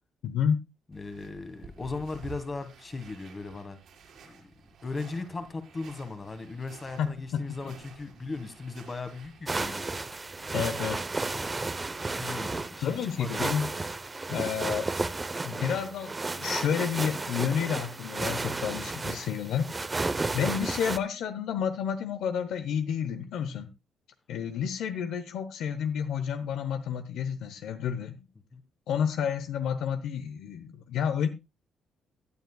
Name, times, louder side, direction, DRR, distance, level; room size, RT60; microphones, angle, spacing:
voice 1, 0.2-0.6 7.0-7.7 10.5-11.0 12.8-13.7 14.3-14.9 15.4-19.7 20.3-23.7 24.3-28.2 28.9-31.3, left 8 dB, 80° left, 0.9 m, -30 dB
voice 2, 0.9-3.8 4.2-4.5 4.8-9.9 11.3-11.6 12.1-13.4 28.5-28.6, left 3 dB, 30° left, 1.8 m, -38 dB
sound 1, 0.9-12.4, right 4 dB, 70° right, 4.4 m, -52 dB
sound 2, 9.5-21.0, right 3 dB, 25° right, 0.7 m, -33 dB
17.0 x 9.4 x 2.3 m
cardioid pair, 90°, 0 cm